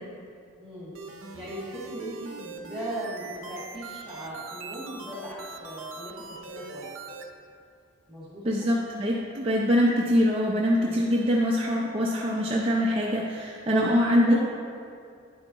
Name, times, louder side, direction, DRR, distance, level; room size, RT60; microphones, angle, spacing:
voice 1, 0.6-0.9 1.3-6.9 8.1-8.7 10.7-11.0 13.6-13.8 14.2-14.3, right 1 dB, ahead, -11 dB, 1.7 m, -37 dB
sound 1, 0.9-7.2, right 3 dB, 65° right, 0.7 m, -41 dB
voice 2, 8.4-14.3, equal, 25° right, -3 dB, 0.5 m, -24 dB
10.0 x 4.5 x 4.0 m, 2.4 s
head